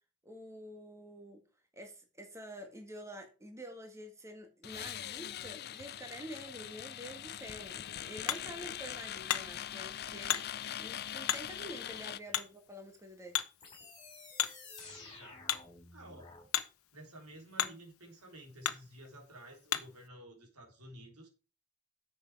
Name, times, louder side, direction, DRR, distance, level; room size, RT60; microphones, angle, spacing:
voice 1, 0.2-1.4 1.7-10.4 10.8-13.4, equal, 15° right, 1.8 m, -48 dB
sound 1, 4.6-12.2, left 11 dB, 45° left, 0.5 m, -42 dB
Hammer, 7.4-20.1, left 11 dB, 65° left, 1.0 m, -40 dB
sound 2, 13.6-16.5, left 3 dB, 20° left, 5.1 m, -52 dB
voice 2, 14.8-15.6 15.9-16.3 16.9-21.3, right 1 dB, 80° right, 3.7 m, -53 dB
10.0 x 7.6 x 4.7 m
head